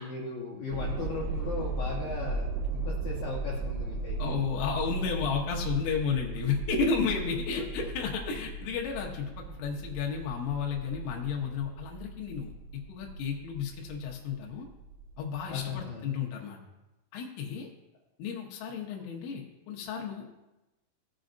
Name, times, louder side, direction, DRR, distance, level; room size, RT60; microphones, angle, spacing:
voice 1, 0.0-4.2 7.5-7.9 15.5-16.1, left 4 dB, 65° left, -5 dB, 2.4 m, -37 dB
sound 1, 0.7-15.8, right 3 dB, 85° right, 3.0 m, -36 dB
voice 2, 4.2-12.5 12.9-14.7 15.2-16.6 17.1-17.7 18.2-20.4, left 6 dB, 85° left, -1 dB, 3.6 m, -32 dB
17.5 x 6.2 x 2.6 m, 1.0 s
omnidirectional pair, 5.6 m